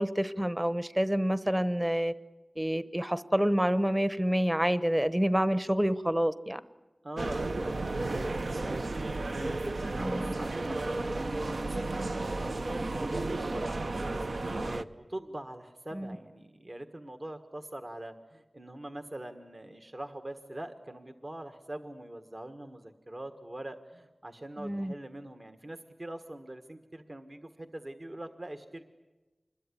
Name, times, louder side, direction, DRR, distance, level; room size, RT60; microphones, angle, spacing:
voice 1, 0.0-2.1 2.6-6.6 10.0-10.3 15.9-16.1 24.6-24.9, equal, 15° right, 0.9 m, -28 dB
voice 2, 7.0-12.6 13.0-28.8, right 1 dB, 45° right, 1.5 m, -43 dB
sound 1, 7.2-14.8, right 2 dB, 70° right, 0.8 m, -33 dB
26.0 x 21.5 x 9.9 m
wide cardioid pair, 65°, 0 cm